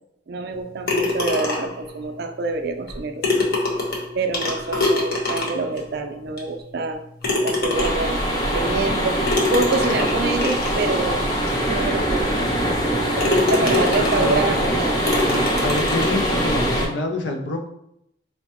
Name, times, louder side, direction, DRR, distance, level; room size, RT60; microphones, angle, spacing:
voice 1, 0.3-3.5 4.1-7.0 7.4-8.2 8.5-9.2 9.5-11.2 11.7-12.4 13.2-15.0, right 3 dB, 60° right, 6 dB, 0.4 m, -26 dB
sound 1, 0.9-1.8 2.9-3.0 3.2-5.8 6.4-6.5 7.2-8.2 9.3-10.8 11.5-11.6 12.1-12.2 12.7-12.9 13.2-14.5 15.1-16.2, left 2 dB, 60° left, 0.9 m, -24 dB
sound 2, 7.7-16.9, equal, 25° left, 0.7 m, -22 dB
voice 2, 13.3-14.6 15.2-17.7, left 2 dB, 80° left, 4 dB, 0.6 m, -28 dB
4.4 x 2.1 x 2.9 m, 0.76 s
head